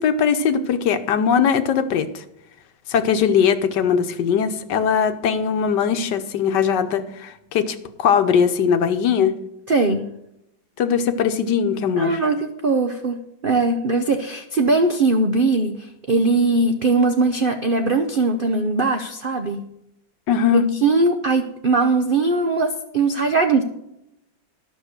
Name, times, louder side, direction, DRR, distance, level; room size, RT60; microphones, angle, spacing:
voice 1, 0.0-2.2 2.9-9.3 10.8-12.2 20.3-20.7, left 7 dB, 65° left, 9 dB, 1.4 m, -20 dB
voice 2, 9.7-10.1 12.0-19.7 20.5-23.6, right 3 dB, 85° right, 6 dB, 0.4 m, -20 dB
12.5 x 6.2 x 6.6 m, 0.82 s
omnidirectional pair, 2.1 m